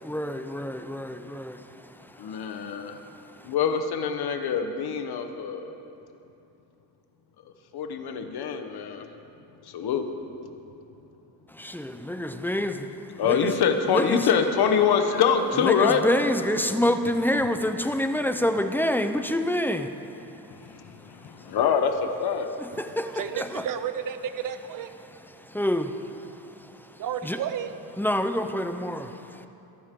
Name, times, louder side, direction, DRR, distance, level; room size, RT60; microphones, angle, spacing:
voice 1, 0.0-3.5 11.5-13.6 13.9-14.3 15.6-21.6 22.6-23.6 25.3-27.4 28.0-29.5, left 1 dB, 5° left, 8 dB, 0.6 m, -28 dB
voice 2, 2.2-2.9 3.4-5.7 7.7-9.1 9.7-10.1 13.2-16.0 20.6-21.9 22.2-22.5, left 7 dB, 70° left, 6 dB, 1.2 m, -25 dB
voice 3, 23.1-24.9 27.0-27.7, right 9 dB, 55° right, 10 dB, 0.8 m, -32 dB
22.5 x 12.0 x 3.8 m, 2.8 s
cardioid pair, 120°, 39 cm